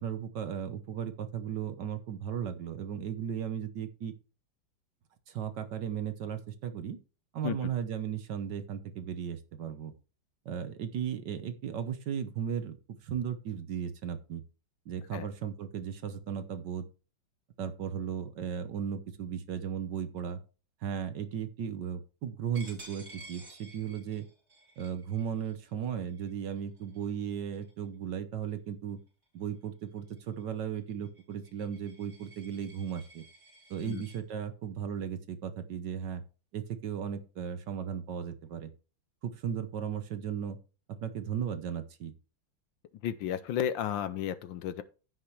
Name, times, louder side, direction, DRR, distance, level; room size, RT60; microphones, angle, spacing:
voice 1, 0.0-4.1 5.3-7.0 7.3-9.9 10.4-12.8 13.0-14.4 14.9-16.9 17.6-20.4 20.8-24.3 24.8-29.0 29.3-33.2 33.7-36.2 36.5-38.7 39.2-40.6 40.9-42.1, right 8 dB, 60° right, 1.5 m, -36 dB
Coin (dropping), 22.5-27.9 28.4-28.7 29.1-34.2, right 2 dB, 30° right, 4.0 m, -54 dB
voice 2, 43.0-44.8, left 10 dB, 70° left, 1.3 m, -33 dB
15.0 x 5.9 x 3.2 m
omnidirectional pair, 2.3 m